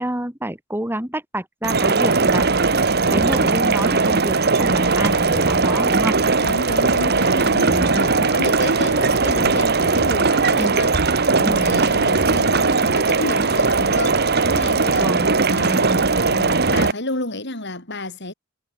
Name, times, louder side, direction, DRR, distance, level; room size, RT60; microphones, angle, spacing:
voice 1, 0.0-6.2 7.6-8.0 10.6-10.8 11.4-11.7 14.9-15.3, right 1 dB, 10° right, 3.6 m, -28 dB
sound 1, 1.6-16.9, right 4 dB, 50° right, 1.5 m, -19 dB
voice 2, 6.4-10.9 11.3-15.1 15.5-18.3, left 2 dB, 55° left, 6.2 m, -30 dB
head